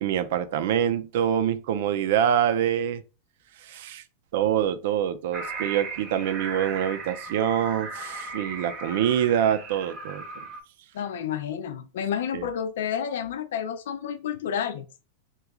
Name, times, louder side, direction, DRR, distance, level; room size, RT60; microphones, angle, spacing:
voice 1, 0.0-3.0 3.6-4.0 4.3-10.4 12.3-12.5, right 9 dB, 65° right, 0.4 m, -25 dB
sound 1, 5.3-10.6, right 4 dB, 30° right, 0.8 m, -37 dB
voice 2, 10.9-14.8, left 8 dB, 75° left, 0.5 m, -30 dB
3.0 x 2.3 x 3.5 m
supercardioid pair, 150°, 0 cm